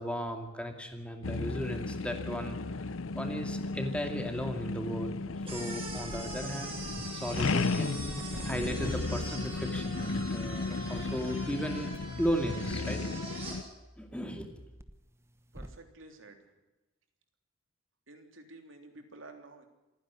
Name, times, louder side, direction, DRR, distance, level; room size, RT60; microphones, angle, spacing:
voice 1, 0.0-2.6 3.1-5.2 5.5-6.7 7.1-8.2 8.4-11.9 12.2-13.0 14.0-14.6, equal, 5° left, 5 dB, 2.4 m, -35 dB
sound 1, 1.2-13.6, left 3 dB, 90° left, 0.7 m, -35 dB
sound 2, 5.4-13.6, right 3 dB, 30° right, 6.4 m, -43 dB
sound 3, 6.1-7.4 7.7-9.1 9.4-9.7 10.2-10.4 10.9-12.4 12.7-15.7, equal, 15° right, 1.1 m, -48 dB
voice 2, 15.5-16.5 18.1-19.7, right 2 dB, 75° right, 5 dB, 3.3 m, -51 dB
27.0 x 10.0 x 9.7 m, 1.1 s
head